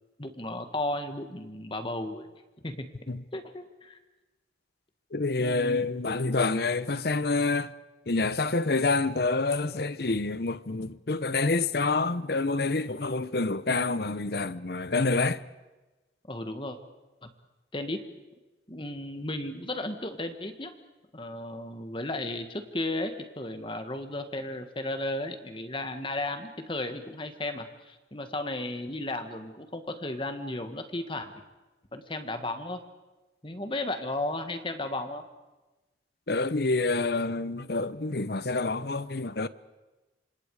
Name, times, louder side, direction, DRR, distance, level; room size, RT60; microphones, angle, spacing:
voice 1, 0.2-2.3 2.6-2.8 3.3-4.0 5.4-5.9 16.3-16.8 17.2-17.3 17.7-18.0 18.7-20.7 21.1-31.3 31.9-32.8 33.4-35.2, left 2 dB, 25° left, 1.7 m, -34 dB
voice 2, 5.1-7.7 8.1-15.4 36.3-39.5, left 3 dB, 55° left, 0.8 m, -27 dB
28.0 x 26.5 x 4.9 m
head